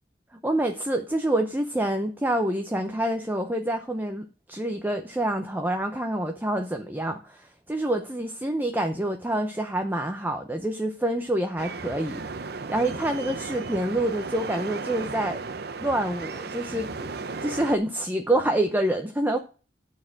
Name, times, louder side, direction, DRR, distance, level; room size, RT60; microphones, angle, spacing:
voice 1, 0.4-12.2 12.5-15.4 15.8-16.9 17.4-19.4, right 1 dB, 10° right, 5 dB, 0.7 m, -27 dB
sound 1, 11.6-17.8, right 4 dB, 60° right, 0.8 m, -35 dB
10.5 x 4.4 x 7.1 m, 0.36 s
head